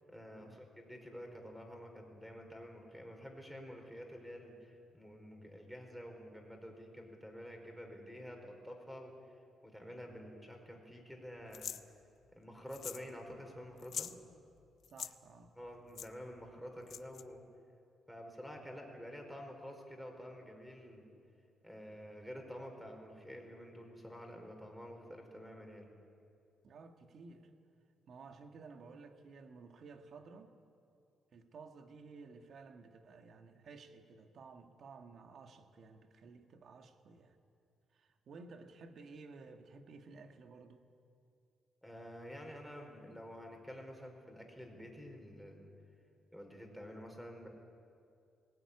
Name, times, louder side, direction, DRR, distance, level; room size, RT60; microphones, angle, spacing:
voice 1, 0.1-9.1 9.6-11.7 12.3-14.1 15.5-17.4 18.1-21.1 21.6-25.9 41.8-45.7 46.3-47.5, equal, ahead, 3 dB, 4.8 m, -49 dB
sound 1, 11.5-11.8 12.7-13.1 13.3-13.4 13.8-14.1 14.8-15.1 16.0-16.1 16.9-17.2, left 8 dB, 65° left, 0.8 m, -43 dB
voice 2, 14.9-15.5 26.6-27.5 28.1-30.5 31.3-37.4 37.9-40.8, right 4 dB, 60° right, 5 dB, 2.0 m, -54 dB
20.0 x 17.5 x 9.9 m, 2.5 s
cardioid pair, 90°, 0 cm